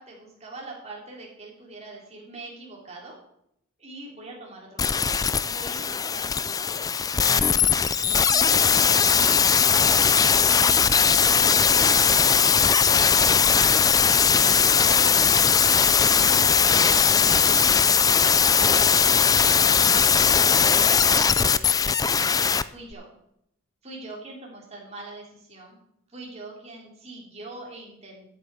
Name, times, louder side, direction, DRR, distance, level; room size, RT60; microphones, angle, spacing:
voice 1, 0.0-3.2 3.8-7.1 7.8-9.3 9.6-23.1 23.8-25.8 26.1-28.3, right 2 dB, 35° right, -2 dB, 3.7 m, -44 dB
sound 1, 4.8-22.6 22.9-23.0, left 6 dB, 20° left, 0.3 m, -19 dB
13.0 x 8.1 x 4.9 m, 0.75 s
head